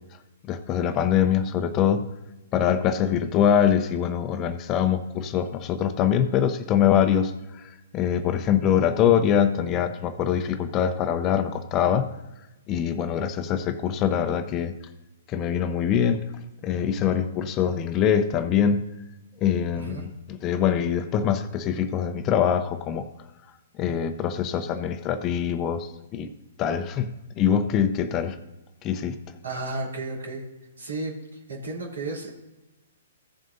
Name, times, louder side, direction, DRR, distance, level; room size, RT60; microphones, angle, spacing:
voice 1, 0.5-2.0 2.5-12.1 12.7-14.7 15.3-16.2 16.6-18.9 19.4-23.1 23.8-26.3 26.6-27.1 27.4-28.4 28.8-29.2, left 8 dB, 30° left, 10 dB, 0.7 m, -23 dB
voice 2, 19.7-20.0 29.4-30.4 30.8-31.1 31.5-32.3, right 2 dB, 80° right, -2 dB, 3.2 m, -33 dB
16.0 x 7.5 x 2.7 m, 1.0 s
hypercardioid pair, 125°, 0 cm